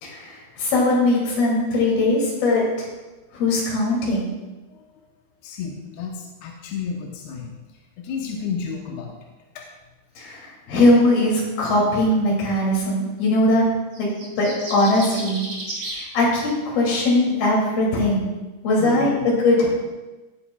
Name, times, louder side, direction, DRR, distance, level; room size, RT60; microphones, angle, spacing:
voice 1, 0.0-2.9 3.3-4.3 10.2-13.7 14.0-14.1 14.4-15.5 16.1-18.3 18.6-19.8, left 1 dB, 55° left, -3 dB, 4.1 m, -20 dB
voice 2, 5.4-7.5 8.0-9.1 18.8-19.2, left 6 dB, 80° left, 0 dB, 2.4 m, -31 dB
sound 1, 13.9-16.0, right 2 dB, 30° right, 2.7 m, -33 dB
17.0 x 7.7 x 2.3 m, 1.1 s
omnidirectional pair, 5.8 m